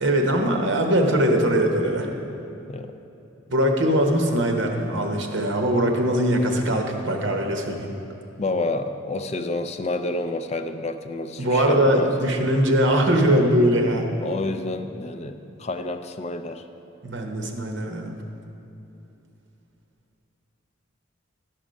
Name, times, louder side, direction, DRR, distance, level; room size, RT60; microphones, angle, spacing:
voice 1, 0.0-2.1 3.5-7.9 11.4-14.1 17.0-18.1, right 1 dB, 65° right, 3 dB, 1.0 m, -21 dB
voice 2, 8.4-12.3 14.2-16.6, left 2 dB, 35° left, 8 dB, 0.4 m, -29 dB
12.0 x 6.1 x 5.2 m, 2.9 s
head